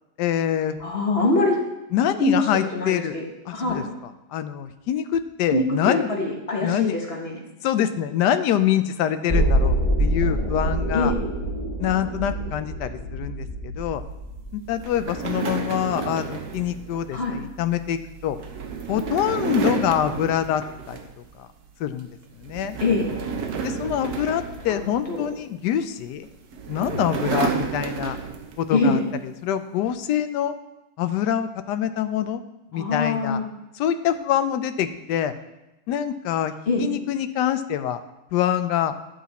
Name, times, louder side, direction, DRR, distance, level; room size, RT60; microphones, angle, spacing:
voice 1, 0.2-0.8 1.9-3.1 3.5-3.8 4.3-6.1 6.6-6.9 7.6-11.1 11.8-14.0 14.5-18.4 18.9-20.6 20.9-21.0 21.4-21.5 21.8-22.1 22.4-22.8 23.6-26.3 26.7-28.2 28.6-29.0 29.4-30.5 31.0-32.4 32.7-33.4 33.8-35.3 35.9-36.5 36.8-38.0 38.3-38.9, left 10 dB, 90° left, 10 dB, 1.2 m, -25 dB
voice 2, 0.8-1.6 2.2-2.5 2.7-3.2 3.5-3.9 5.5-7.4 10.9-11.2 17.1-17.4 22.8-23.1 24.7-24.8 25.1-25.3 28.7-29.0 32.7-33.5 36.7-36.9, left 2 dB, 40° left, 0 dB, 1.4 m, -23 dB
sound 1, 9.3-15.3 15.6-15.7, right 1 dB, 25° left, 1.7 m, -25 dB
sound 2, 14.8-21.3 21.7-22.0 22.4-25.4 26.2-28.7, right 5 dB, 70° right, 1.3 m, -31 dB
10.5 x 6.2 x 4.1 m, 0.97 s
omnidirectional pair, 1.8 m